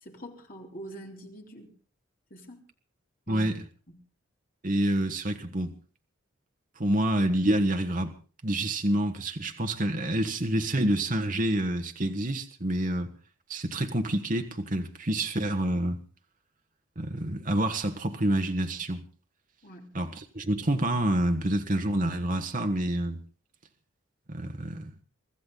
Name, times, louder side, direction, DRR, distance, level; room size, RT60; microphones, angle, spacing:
voice 1, 0.0-1.7 2.3-2.6 3.3-3.5 3.9-4.0 19.6-19.9, right 1 dB, 45° left, 3.6 m, -44 dB
voice 2, 4.6-5.7 6.8-8.1 8.4-13.1 13.5-16.0 17.0-19.0 19.9-23.2 24.3-24.9, right 1 dB, 40° right, 1.3 m, -27 dB
24.5 x 14.0 x 3.9 m
head